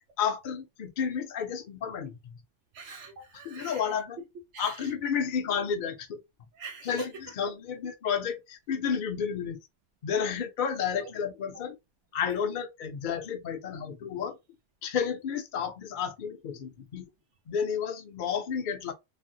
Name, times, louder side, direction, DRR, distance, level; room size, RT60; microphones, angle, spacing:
voice 1, 0.2-2.3 3.4-4.2 4.6-6.2 6.8-9.6 10.0-11.8 12.1-14.3 14.8-17.0 17.5-18.9, left 7 dB, 55° left, 0.7 m, -31 dB
voice 2, 2.7-3.8 4.5-4.9 6.5-7.1 11.0-11.1 11.5-11.6, right 5 dB, 85° right, 1.0 m, -43 dB
3.2 x 2.1 x 2.6 m
omnidirectional pair, 1.2 m